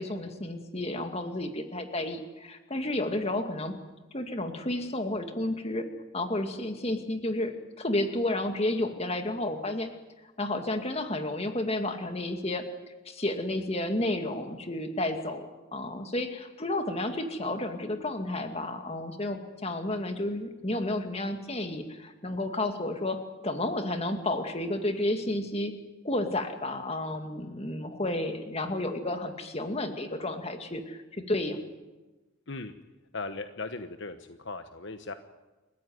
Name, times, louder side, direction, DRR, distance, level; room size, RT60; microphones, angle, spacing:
voice 1, 0.0-3.7 4.1-5.9 6.1-9.9 10.4-12.6 13.1-15.5 15.7-25.7 26.0-31.6, left 1 dB, 30° left, 6 dB, 2.3 m, -31 dB
voice 2, 33.1-35.1, left 3 dB, 60° left, 8 dB, 1.2 m, -38 dB
30.0 x 15.0 x 9.5 m, 1.2 s
head